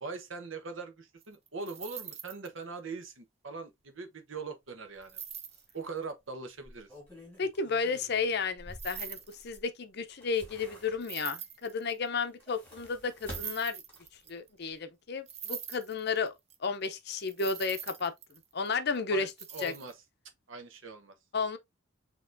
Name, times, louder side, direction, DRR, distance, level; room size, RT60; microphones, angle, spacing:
voice 1, 0.0-5.2 5.7-6.9 19.1-19.9 20.5-21.1, right 4 dB, 70° right, 1.0 m, -41 dB
sound 1, 1.2-2.5 5.0-5.7 8.7-9.7 11.0-12.1 13.2-14.5 15.3-16.5 16.8-16.9 17.1-18.7 19.3-19.9, right 9 dB, 30° right, 0.5 m, -43 dB
sound 2, 5.0-5.1 5.5-5.6 6.6-9.6 10.0-11.3 12.2-14.3 14.7-14.8, equal, 10° left, 3.0 m, -50 dB
voice 2, 7.4-9.2 9.4-13.8 14.3-16.3 16.6-18.1 18.5-19.3 19.6-19.7 21.3-21.6, left 4 dB, 55° left, 0.6 m, -32 dB
6.5 x 2.9 x 2.5 m
head